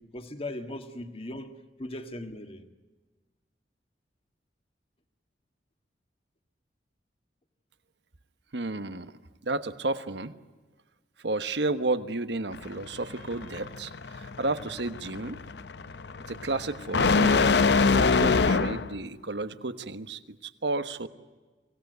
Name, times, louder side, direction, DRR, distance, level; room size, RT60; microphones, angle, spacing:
voice 1, 0.0-2.7 18.4-18.6, left 1 dB, 35° left, 1.8 m, -39 dB
voice 2, 8.5-9.1 9.4-10.3 11.2-15.4 16.3-21.1, right 2 dB, 80° right, 1.2 m, -32 dB
sound 1, 12.5-19.0, left 4 dB, 75° left, 0.7 m, -25 dB
25.0 x 17.5 x 9.4 m
head